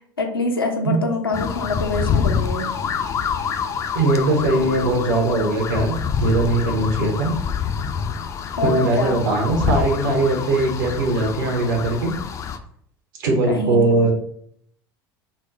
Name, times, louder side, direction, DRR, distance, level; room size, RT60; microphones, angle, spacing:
voice 1, 0.0-2.7 8.6-9.3 13.5-14.0, left 3 dB, 85° left, 2 dB, 0.6 m, -25 dB
sound 1, 1.3-12.6, left 7 dB, 25° left, 0.3 m, -26 dB
voice 2, 3.9-5.9 6.2-7.3 8.6-12.1 13.2-14.1, right 2 dB, 60° right, 2 dB, 0.8 m, -20 dB
4.2 x 2.1 x 3.7 m, 0.66 s
figure-of-eight pair, 70°, 12 cm